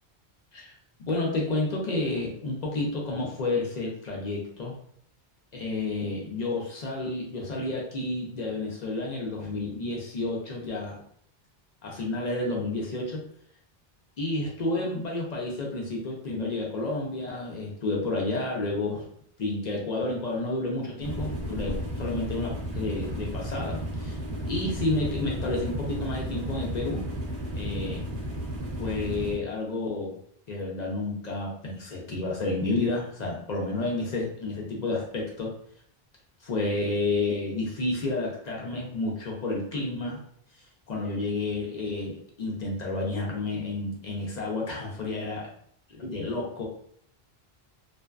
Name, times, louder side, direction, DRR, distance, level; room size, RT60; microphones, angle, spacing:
voice 1, 1.0-4.8 5.5-11.0 11.8-13.2 14.2-19.0 19.4-24.2 24.4-27.0 27.5-28.0 28.8-30.2 30.5-35.5 36.4-40.2 40.9-45.5 45.9-46.6, left 2 dB, 55° left, -2 dB, 0.6 m, -30 dB
sound 1, 21.0-29.4, right 1 dB, 60° right, 0.8 m, -33 dB
2.5 x 2.1 x 2.3 m, 0.64 s
omnidirectional pair, 1.0 m